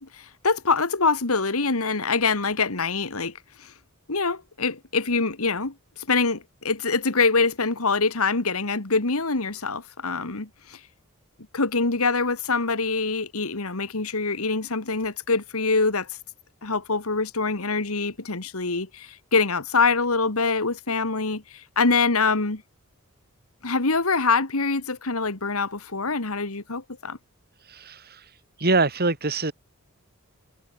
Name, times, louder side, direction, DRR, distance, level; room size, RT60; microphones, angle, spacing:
voice 1, 0.0-3.3 3.6-3.7 4.1-5.7 6.1-10.8 11.5-16.1 16.6-22.6 23.6-27.2, left 4 dB, 75° left, 2.1 m, -24 dB
voice 2, 27.6-28.3 28.6-29.5, right 3 dB, 45° right, 3.3 m, -24 dB
head